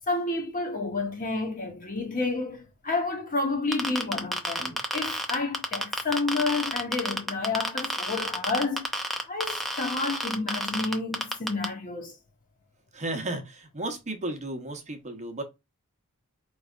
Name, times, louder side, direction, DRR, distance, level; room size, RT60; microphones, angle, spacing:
voice 1, 0.1-8.9 9.3-12.1, left 3 dB, 40° left, 1.0 m, -30 dB
sound 1, 3.7-11.7, equal, ahead, 0.6 m, -29 dB
voice 2, 12.9-15.4, right 2 dB, 30° right, 0.9 m, -34 dB
4.7 x 3.1 x 2.4 m
head